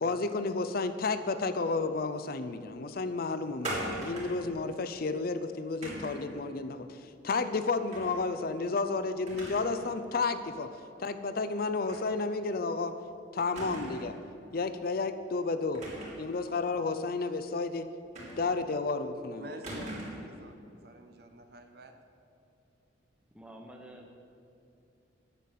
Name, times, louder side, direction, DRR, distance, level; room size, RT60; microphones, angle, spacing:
voice 1, 0.0-10.7 11.0-13.0 13.3-14.2 14.5-15.9 16.2-17.9 18.4-19.5, left 3 dB, 50° left, 10 dB, 0.5 m, -32 dB
sound 1, 3.6-4.5 5.8-6.3 7.9-8.2 8.6-8.7 9.3-9.8 10.1-10.2 11.9-12.1 12.4-12.5 13.6-14.2 15.7-16.3 18.2-18.7 19.6-20.3, right 1 dB, 35° right, 3.3 m, -39 dB
voice 2, 19.4-21.9, right 1 dB, 55° right, 6 dB, 0.9 m, -49 dB
voice 3, 23.3-24.2, right 1 dB, 5° right, 2 dB, 1.2 m, -49 dB
10.5 x 7.2 x 8.2 m, 2.6 s
head